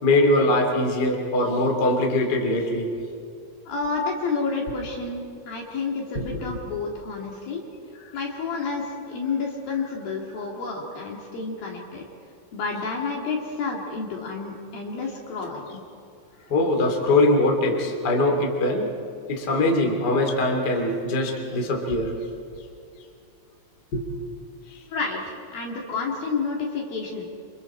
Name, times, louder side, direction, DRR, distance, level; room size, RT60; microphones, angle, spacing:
voice 1, 0.0-2.9 6.1-6.2 16.5-18.9 19.3-22.1 23.9-24.0, left 2 dB, 25° left, 1 dB, 2.6 m, -22 dB
voice 2, 3.7-7.6 8.1-12.1 12.5-15.8 24.9-27.2, left 4 dB, 55° left, 0 dB, 3.6 m, -30 dB
29.0 x 28.0 x 4.4 m, 2.4 s
omnidirectional pair, 5.6 m